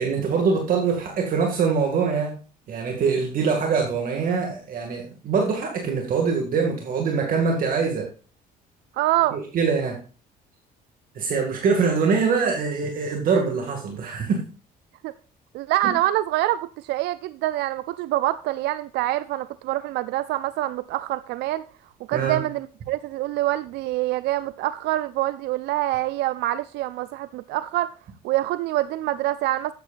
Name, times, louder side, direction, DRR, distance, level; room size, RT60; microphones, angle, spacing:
voice 1, 0.0-2.4 2.7-8.1 9.3-10.0 11.1-14.4 22.1-22.4, right 5 dB, 55° right, 2.1 m, -23 dB
voice 2, 8.9-9.4 15.0-15.1 15.5-21.6 22.1-27.9 28.2-29.7, right 15 dB, 85° right, 0.4 m, -25 dB
13.0 x 9.2 x 2.5 m
cardioid pair, 110°, 17 cm